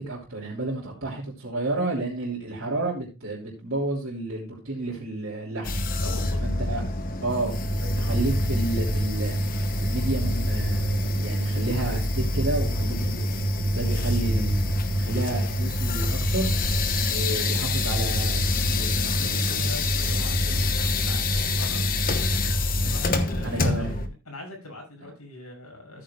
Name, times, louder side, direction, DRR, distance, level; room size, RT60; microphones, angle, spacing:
voice 1, 0.0-5.8 6.4-6.8 7.2-9.4 9.8-14.6 14.9-16.5 17.1-19.6 22.8-23.0 23.4-24.0, right 2 dB, 65° right, -6 dB, 3.2 m, -31 dB
sound 1, 5.6-24.1, left 1 dB, 40° left, 1.0 m, -25 dB
voice 2, 6.0-6.4 19.2-26.0, left 2 dB, 90° left, 1 dB, 6.5 m, -42 dB
14.0 x 8.8 x 2.3 m, 0.28 s
head